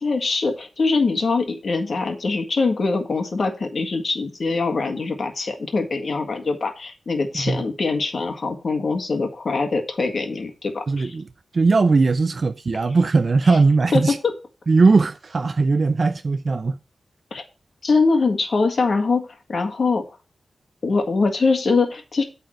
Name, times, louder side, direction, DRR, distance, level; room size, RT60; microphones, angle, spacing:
voice 1, 0.0-11.2 13.9-14.0 17.3-17.4 17.8-20.0 20.8-22.2, left 4 dB, 55° left, 1.8 m, -23 dB
voice 2, 10.9-11.3 11.5-14.2 14.7-16.8, right 4 dB, 45° right, 0.4 m, -19 dB
8.6 x 4.1 x 6.4 m
wide cardioid pair, 130°, 0 cm